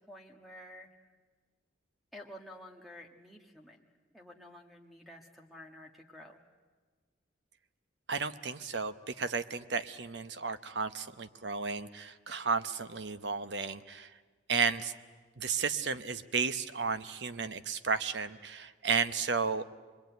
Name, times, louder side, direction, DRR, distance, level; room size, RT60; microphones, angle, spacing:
voice 1, 0.1-0.9 2.1-3.8 4.1-6.4, left 1 dB, ahead, 2 dB, 1.5 m, -51 dB
voice 2, 8.1-14.1 14.5-14.9 15.4-19.6, right 5 dB, 65° right, 12 dB, 0.9 m, -33 dB
25.0 x 22.0 x 9.3 m, 1.4 s
head